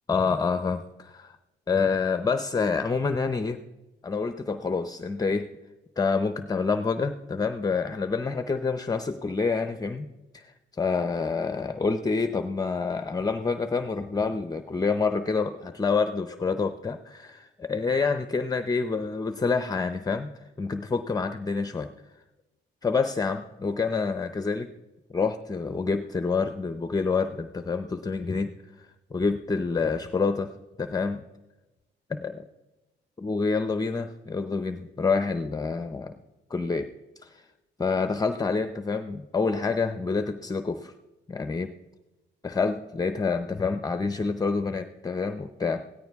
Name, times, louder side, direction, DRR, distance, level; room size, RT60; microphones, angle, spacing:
voice 1, 0.1-1.4 1.7-3.6 4.0-5.5 6.0-10.1 10.3-21.9 22.8-24.7 25.1-28.5 28.8-30.5 30.8-31.2 32.1-32.5 33.2-36.1 36.5-36.9 37.2-37.4 37.8-40.9 41.3-41.7 42.4-45.8, left 4 dB, 20° left, 9 dB, 0.6 m, -27 dB
17.0 x 13.5 x 3.5 m, 1.1 s
cardioid pair, 90°, 20 cm